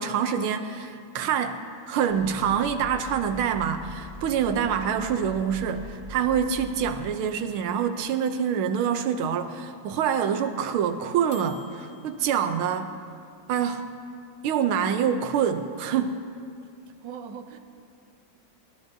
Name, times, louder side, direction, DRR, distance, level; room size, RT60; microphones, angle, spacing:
voice 1, 0.0-13.0 13.5-13.9 14.4-16.2, right 7 dB, 80° right, 8 dB, 1.5 m, -26 dB
sound 1, 2.1-7.1, left 1 dB, 15° right, 2.8 m, -43 dB
sound 2, 3.9-12.2, left 5 dB, 45° left, 1.4 m, -53 dB
voice 2, 16.9-17.6, right 7 dB, 65° right, 6 dB, 1.4 m, -40 dB
28.5 x 13.5 x 2.7 m, 2.4 s
omnidirectional pair, 2.3 m